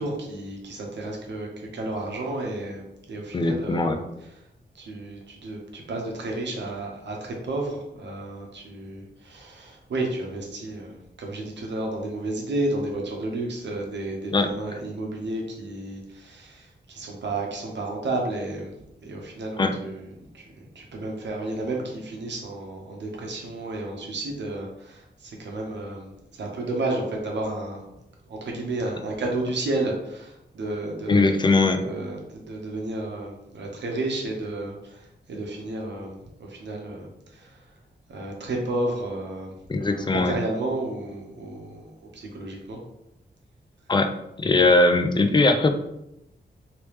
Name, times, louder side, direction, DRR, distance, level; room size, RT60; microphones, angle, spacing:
voice 1, 0.0-2.8 3.1-4.0 4.7-18.7 19.0-20.5 20.7-27.8 28.3-31.4 31.7-37.6 38.1-42.8, right 2 dB, 85° right, 0 dB, 0.9 m, -32 dB
voice 2, 3.3-4.0 14.3-14.5 19.6-19.7 31.1-31.8 39.7-40.3 43.9-45.7, left 2 dB, 25° left, 7 dB, 0.3 m, -20 dB
3.3 x 3.0 x 3.0 m, 0.86 s
wide cardioid pair, 130°, 18 cm